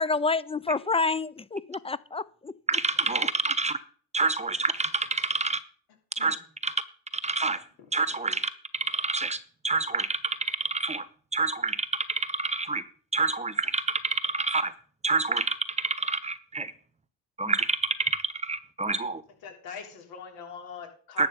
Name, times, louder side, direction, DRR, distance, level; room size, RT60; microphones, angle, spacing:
voice 1, 0.0-2.5, left 3 dB, 15° left, 0.4 m, -28 dB
voice 2, 2.7-3.8 4.1-5.6 6.2-6.4 6.6-6.7 7.2-7.6 7.9-9.4 9.6-11.0 11.3-12.8 13.1-14.7 15.0-16.7 17.4-18.1 18.4-19.2 21.2-21.3, right 3 dB, 20° right, 0.9 m, -27 dB
voice 3, 19.4-21.3, left 7 dB, 80° left, 3.4 m, -42 dB
12.0 x 7.8 x 5.1 m
supercardioid pair, 90°, 36 cm